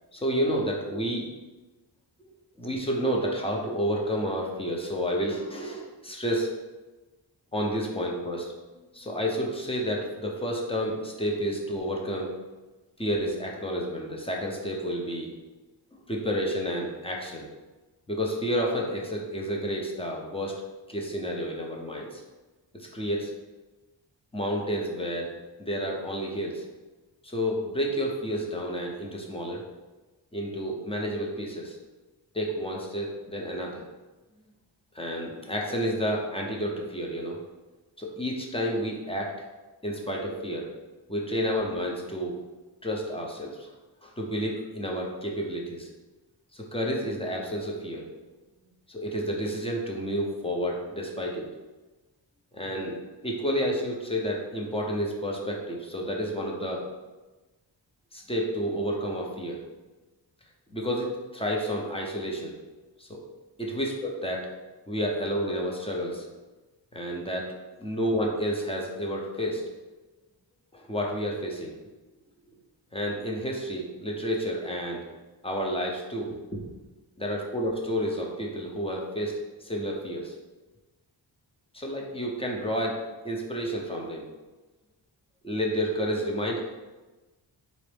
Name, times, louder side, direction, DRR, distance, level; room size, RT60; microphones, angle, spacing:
voice 1, 0.1-1.3 2.2-2.3 2.6-6.5 7.5-8.5 8.9-12.3 13.0-15.3 16.1-17.5 18.1-20.6 20.9-22.2 22.7-23.3 24.3-25.3 25.6-26.6 27.2-29.7 30.3-31.8 32.3-33.8 34.9-37.4 38.0-39.3 39.8-40.7 41.1-42.4 42.8-43.7 44.0-45.9 46.5-48.1 48.9-51.5 52.5-53.0 53.2-56.9 58.1-59.6 60.7-62.5 63.0-63.2 63.6-64.5 64.9-66.2 66.9-67.5 67.8-69.6 70.7-71.7 72.9-75.1 75.4-76.7 77.2-80.3 81.7-83.0 83.2-84.3 85.4-86.7, equal, 15° left, -1 dB, 0.6 m, -30 dB
4.0 x 2.5 x 3.3 m, 1.2 s
wide cardioid pair, 95°, 44 cm